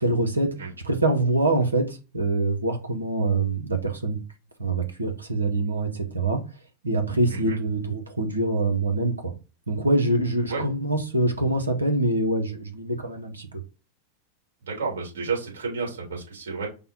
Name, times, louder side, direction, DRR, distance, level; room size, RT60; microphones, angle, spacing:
voice 1, 0.0-0.5 0.8-4.2 4.6-6.4 6.8-9.3 9.7-13.6, right 2 dB, 80° right, 0.9 m, -24 dB
voice 2, 14.6-16.7, right 4 dB, 60° right, 2.8 m, -31 dB
5.3 x 2.2 x 4.1 m
figure-of-eight pair, 90°, 0 cm